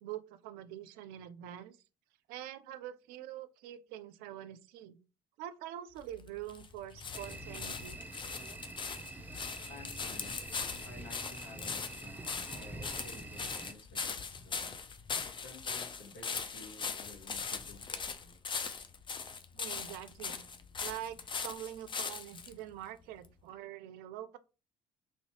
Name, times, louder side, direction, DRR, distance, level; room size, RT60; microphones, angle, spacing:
voice 1, 0.0-1.8 2.3-5.0 5.4-8.0 19.5-20.4 20.8-24.4, right 11 dB, 75° right, 0.4 m, -45 dB
sound 1, 6.0-22.5 23.2-23.3, left 5 dB, 30° left, 0.5 m, -40 dB
sound 2, 7.1-13.7, right 2 dB, 10° right, 0.6 m, -46 dB
voice 2, 9.3-10.4 10.8-14.9 15.4-18.4, left 3 dB, 80° left, 1.3 m, -53 dB
3.1 x 2.7 x 3.1 m
hypercardioid pair, 60°, 16 cm